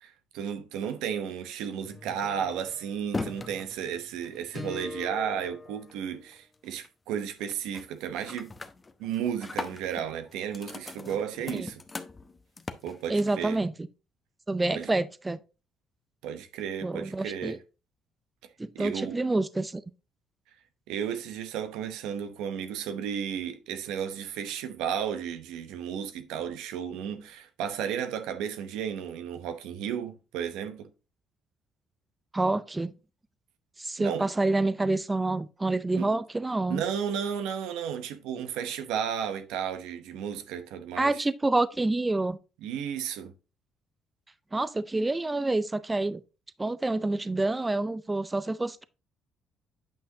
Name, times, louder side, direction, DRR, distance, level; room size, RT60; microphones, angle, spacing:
voice 1, 0.0-8.5 9.0-11.8 12.8-13.6 14.7-14.9 16.2-17.6 18.7-19.2 20.9-30.9 34.0-34.3 35.9-36.1 36.7-41.2 42.6-43.3, right 8 dB, 85° right, 0.8 m, -33 dB
sound 1, 1.8-6.3 6.7-7.1 7.4-7.8 8.2-13.5, left 3 dB, 25° left, 0.8 m, -40 dB
voice 2, 13.1-13.7 14.5-15.4 16.8-17.6 18.6-19.8 32.3-32.9 33.8-36.8 41.0-42.4 44.5-46.2 46.6-48.8, right 2 dB, 20° right, 0.5 m, -27 dB
8.8 x 5.7 x 2.8 m
supercardioid pair, 70°, 0 cm